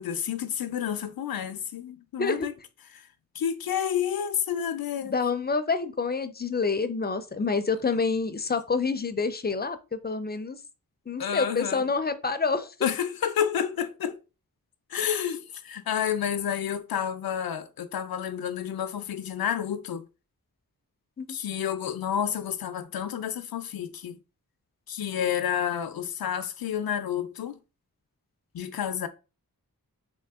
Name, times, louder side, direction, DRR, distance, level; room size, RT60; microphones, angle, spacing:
voice 1, 0.0-2.5 3.3-5.2 11.2-11.8 12.8-14.2 14.9-20.0 21.3-24.2 24.9-27.6 28.5-29.1, left 9 dB, 85° left, 0.5 m, -30 dB
voice 2, 5.0-10.6 11.1-12.7 21.2-21.3, left 4 dB, 30° left, 0.4 m, -27 dB
3.6 x 2.7 x 3.4 m
wide cardioid pair, 80°, 36 cm